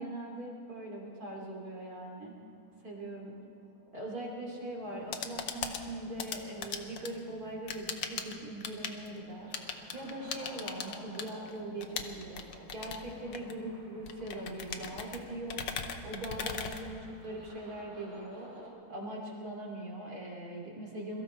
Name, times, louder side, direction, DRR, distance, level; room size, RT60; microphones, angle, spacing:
voice 1, 0.0-2.3 2.8-3.3 3.9-9.5 9.9-15.6 16.0-18.5 18.9-21.2, right 1 dB, 45° right, -2 dB, 3.3 m, -41 dB
sound 1, 0.7-18.7, right 1 dB, 80° right, 3.5 m, -56 dB
sound 2, 4.8-17.5, left 7 dB, 70° left, 1.6 m, -41 dB
23.0 x 14.0 x 4.4 m, 2.4 s
omnidirectional pair, 2.3 m